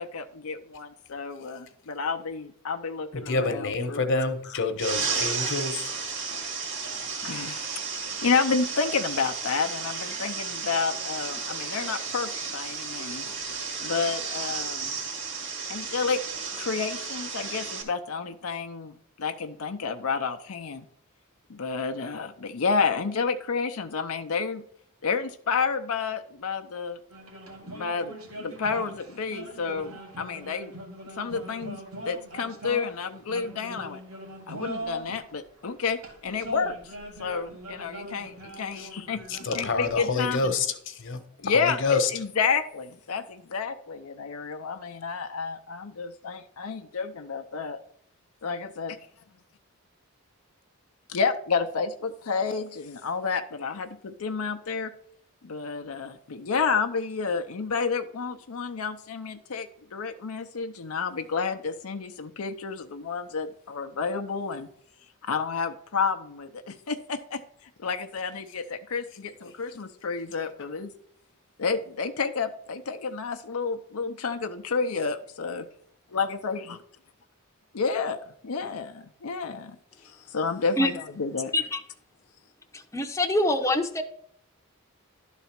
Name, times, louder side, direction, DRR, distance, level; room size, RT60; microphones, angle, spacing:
voice 1, 0.0-4.1 7.2-7.8 8.2-13.3 13.8-15.0 15.7-16.2 16.6-20.9 21.5-24.6 25.0-27.0 27.6-30.7 31.1-34.0 34.5-36.9 37.2-39.2 39.5-40.5 41.4-47.8 48.4-48.9 51.1-54.9 55.4-64.7 65.2-67.4 67.8-70.9 71.6-75.7 76.1-76.8 77.7-79.8 80.0-81.5, left 5 dB, 75° left, 7 dB, 0.6 m, -30 dB
voice 2, 3.1-5.9 38.7-38.9 39.3-42.1, left 3 dB, 60° left, 9 dB, 1.1 m, -28 dB
sound 1, 4.8-17.8, right 5 dB, 55° right, 2.2 m, -33 dB
sound 2, 27.1-35.2 35.9-40.0, equal, 75° right, 1.7 m, -41 dB
voice 3, 82.7-84.0, left 1 dB, 15° left, 3 dB, 0.7 m, -25 dB
11.5 x 4.1 x 5.9 m, 0.66 s
head